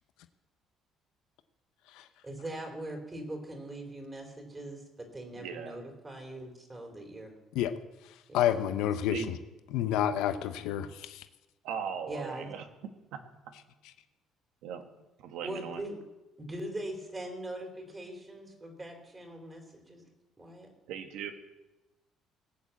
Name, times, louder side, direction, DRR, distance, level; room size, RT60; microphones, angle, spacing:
voice 1, 2.2-7.3 8.3-8.7 12.1-12.5 15.4-16.0 16.4-20.1 20.4-20.7, right 1 dB, 20° right, 3 dB, 3.5 m, -41 dB
voice 2, 5.4-5.8 9.1-9.4 11.6-12.6 13.1-13.2 13.5-13.6 14.6-14.8 15.2-15.8 20.9-21.3, right 7 dB, 80° right, 6 dB, 1.8 m, -38 dB
voice 3, 8.0-9.2 9.7-11.3, left 10 dB, 90° left, 9 dB, 0.8 m, -29 dB
19.0 x 7.2 x 8.3 m, 1.0 s
cardioid pair, 130°, 0 cm